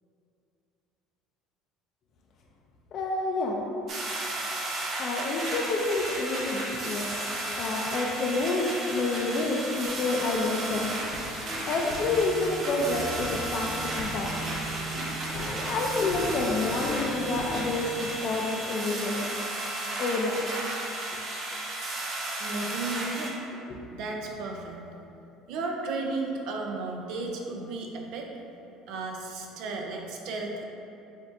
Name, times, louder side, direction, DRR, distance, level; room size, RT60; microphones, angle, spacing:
voice 1, 2.9-3.6 5.0-7.1 7.6-10.9 11.7-14.6 15.3-19.3 20.0-20.5 23.7-23.8, left 3 dB, 55° left, -1 dB, 0.4 m, -29 dB
sound 1, 3.9-23.3, right 1 dB, 50° right, 1.0 m, -34 dB
sound 2, 9.8-18.2, equal, 70° left, 1.0 m, -39 dB
voice 2, 22.4-23.4 23.9-24.9 25.5-28.3 28.9-30.6, right 3 dB, 70° right, 1 dB, 0.6 m, -34 dB
7.1 x 2.5 x 2.6 m, 2.9 s
supercardioid pair, 90°, 0 cm